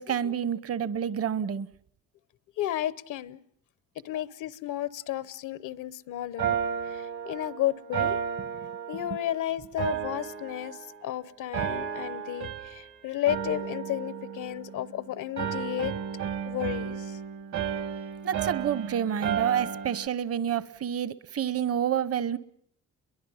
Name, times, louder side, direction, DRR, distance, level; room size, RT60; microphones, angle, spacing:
voice 1, 0.0-1.7 11.6-11.7 18.2-22.4, right 9 dB, 50° right, 0.9 m, -29 dB
voice 2, 2.6-3.4 4.0-6.6 6.9-8.2 8.9-16.0 16.5-17.2, left 13 dB, 85° left, 0.9 m, -33 dB
sound 1, 6.4-9.3 9.8-11.1 11.5-12.9 13.3-15.0 15.4-20.1, right 8 dB, 70° right, 1.6 m, -33 dB
29.5 x 23.0 x 5.7 m
cardioid pair, 90°, 30 cm